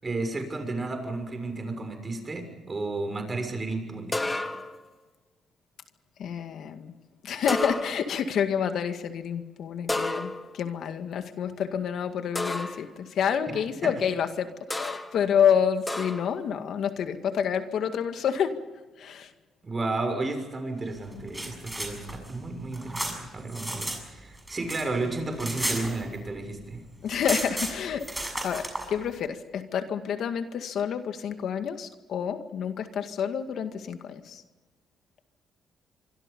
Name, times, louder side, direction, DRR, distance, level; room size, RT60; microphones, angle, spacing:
voice 1, 0.0-4.2 13.5-13.9 19.6-26.8, right 3 dB, 30° right, 7 dB, 6.5 m, -32 dB
sound 1, 4.1-4.9 7.5-8.2 9.9-10.7 12.4-12.9 14.7-15.2 15.9-16.4, left 2 dB, 15° left, 2.1 m, -31 dB
voice 2, 6.2-6.9 7.2-18.5 19.0-19.3 27.0-28.1 28.4-34.4, left 8 dB, 70° left, 7 dB, 2.0 m, -28 dB
sound 2, 21.1-24.0 24.3-26.5 26.7-26.8 27.0-28.9, right 1 dB, 10° right, 7.1 m, -34 dB
26.0 x 24.5 x 5.4 m, 1.2 s
cardioid pair, 90°, 0 cm